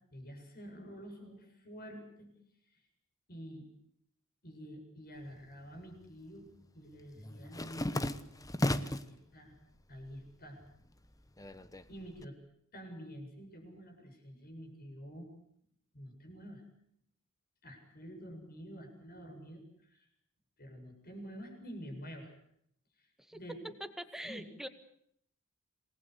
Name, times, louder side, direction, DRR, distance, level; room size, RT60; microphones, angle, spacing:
voice 1, 0.1-2.3 2.7-2.8 3.3-3.7 4.4-6.5 6.7-8.2 8.8-9.5 9.9-10.6 11.9-12.4 12.7-15.3 15.9-16.6 17.6-20.1 20.6-22.4 23.0-23.8 24.2-24.5, equal, 45° left, 4 dB, 7.7 m, -48 dB
sound 1, 5.3-6.1 6.4-9.2 9.6-10.3 10.6-12.2, left 1 dB, 15° left, 1.2 m, -36 dB
voice 2, 24.1-24.7, equal, ahead, 8 dB, 2.0 m, -43 dB
28.0 x 20.0 x 8.3 m, 0.71 s
head